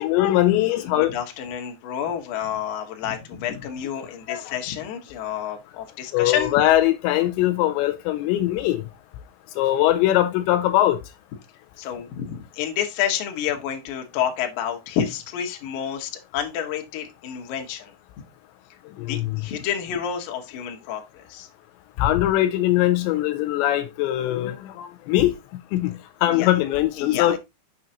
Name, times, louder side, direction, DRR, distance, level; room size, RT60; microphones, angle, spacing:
voice 1, 0.0-1.1 4.3-4.5 6.1-8.8 9.6-11.0 19.1-19.4 22.0-25.3 25.7-27.4, left 14 dB, 85° left, 2.8 m, -21 dB
voice 2, 0.9-6.6 11.8-17.9 19.0-21.5 26.3-26.5 27.0-27.4, left 9 dB, 65° left, 2.5 m, -29 dB
7.6 x 6.4 x 2.8 m
omnidirectional pair, 5.1 m